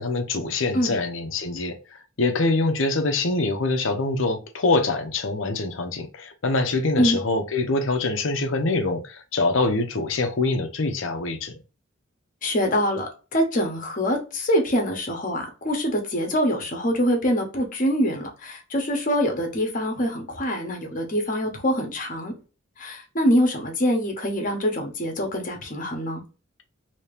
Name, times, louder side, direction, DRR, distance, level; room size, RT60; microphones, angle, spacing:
voice 1, 0.0-1.8 2.2-11.6, left 3 dB, 70° left, 0.7 m, -24 dB
voice 2, 12.4-22.3 22.8-26.2, equal, 40° left, 1.0 m, -24 dB
2.9 x 2.8 x 3.3 m
head